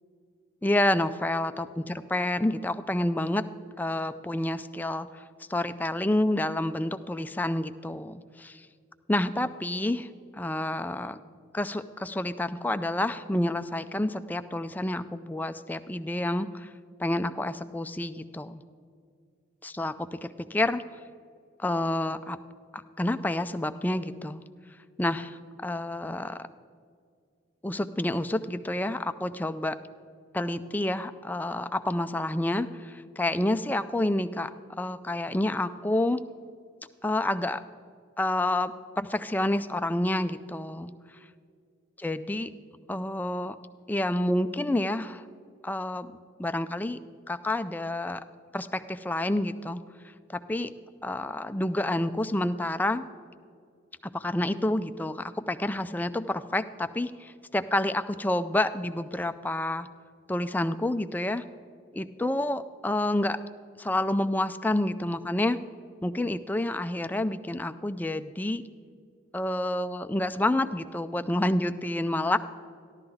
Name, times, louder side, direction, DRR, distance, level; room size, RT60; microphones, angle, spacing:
voice 1, 0.6-3.4 3.8-5.2 5.5-8.7 9.1-10.1 10.3-11.2 11.5-16.7 17.0-18.6 19.6-20.8 21.6-22.4 22.7-24.4 25.0-26.5 27.6-29.8 30.3-36.2 37.0-37.6 38.2-40.9 42.0-42.5 42.9-43.6 43.9-45.2 45.6-46.1 46.4-47.0 47.3-48.2 48.5-49.8 50.3-50.7 51.0-53.0 54.0-59.9 60.3-61.4 61.9-63.4 63.8-65.6 66.0-68.6 69.3-72.4, left 1 dB, 10° left, 10 dB, 0.3 m, -29 dB
14.5 x 11.5 x 3.9 m, 2.2 s
head